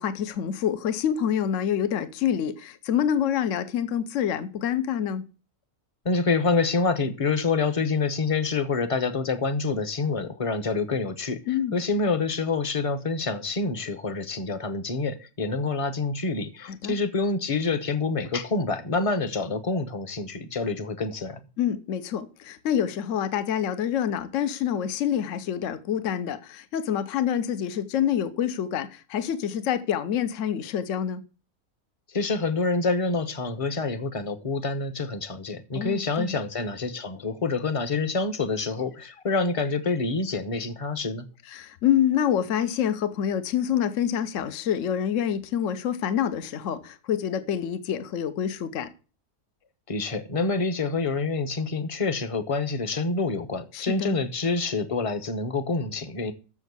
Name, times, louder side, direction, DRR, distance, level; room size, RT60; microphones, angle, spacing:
voice 1, 0.0-5.2 11.5-11.8 16.6-17.0 21.6-31.2 35.7-36.4 41.5-48.9 53.7-54.2, left 9 dB, 65° left, 1.1 m, -27 dB
voice 2, 6.0-21.4 32.1-41.3 49.9-56.3, left 3 dB, 30° left, 0.8 m, -27 dB
7.2 x 6.9 x 8.1 m
omnidirectional pair, 1.5 m